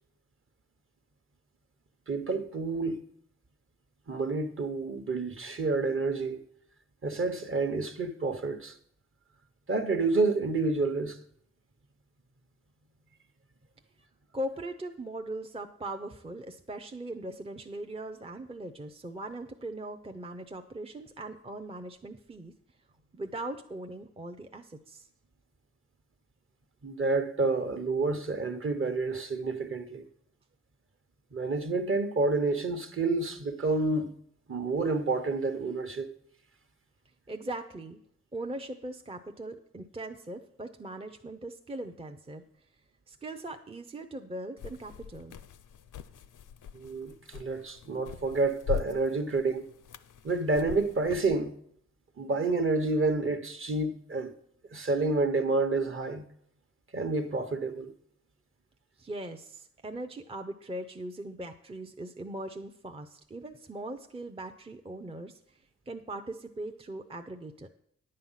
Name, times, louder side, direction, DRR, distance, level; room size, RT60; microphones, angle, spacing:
voice 1, 2.1-3.0 4.1-6.4 7.0-8.8 9.7-11.2 26.8-30.1 31.3-34.1 34.5-36.1 46.7-49.7 50.2-51.5 52.2-54.3 54.7-56.3 56.9-57.9, right 3 dB, 40° right, 1.0 m, -29 dB
voice 2, 14.3-22.5 23.1-25.1 37.3-38.0 38.3-42.4 43.1-45.4 59.0-65.4 65.9-67.7, right 1 dB, 20° right, 0.6 m, -40 dB
sound 1, 44.6-51.3, left 8 dB, 75° left, 0.6 m, -42 dB
10.0 x 7.6 x 5.7 m
wide cardioid pair, 100°, 31 cm